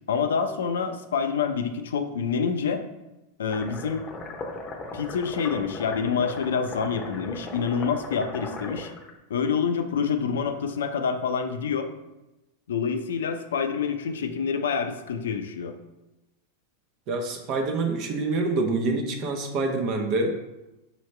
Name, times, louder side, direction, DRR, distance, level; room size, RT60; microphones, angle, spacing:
voice 1, 0.1-2.8 3.4-4.1 4.9-8.9 9.3-11.9 12.7-15.8, left 6 dB, 80° left, 8 dB, 0.5 m, -27 dB
sound 1, 3.5-9.1, left 2 dB, 25° left, 0.8 m, -38 dB
voice 2, 17.1-20.4, right 3 dB, 50° right, 4 dB, 0.9 m, -26 dB
5.5 x 3.0 x 3.2 m, 0.99 s
hypercardioid pair, 110°, 0 cm